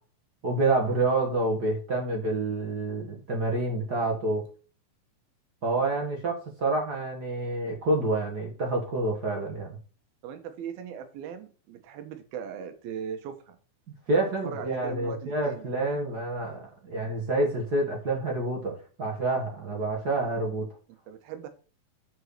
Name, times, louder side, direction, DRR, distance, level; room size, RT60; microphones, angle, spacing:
voice 1, 0.4-4.5 5.6-9.7 14.1-20.7, right 2 dB, 45° right, 1 dB, 1.4 m, -28 dB
voice 2, 10.2-13.6 14.1-15.7 21.1-21.5, right 7 dB, 85° right, 8 dB, 3.1 m, -39 dB
8.0 x 5.6 x 6.5 m, 0.38 s
omnidirectional pair, 4.2 m